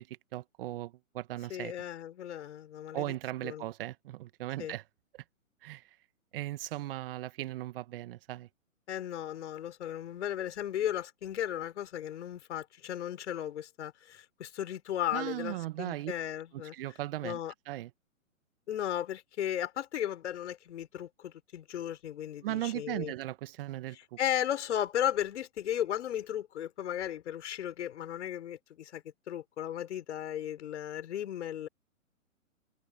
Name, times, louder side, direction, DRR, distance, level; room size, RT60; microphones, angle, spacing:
voice 1, 0.0-1.7 2.9-4.8 5.1-5.2 5.6-5.8 6.3-8.5 15.1-16.1 16.5-17.4 17.7-17.9 22.4-24.0, right 15 dB, 40° right, 1.5 m, -37 dB
voice 2, 1.5-3.1 3.4-3.6 4.6-4.7 8.9-16.7 17.2-17.5 18.7-23.1 23.9-31.7, left 11 dB, 55° left, 5.8 m, -35 dB
hypercardioid pair, 130°, 41 cm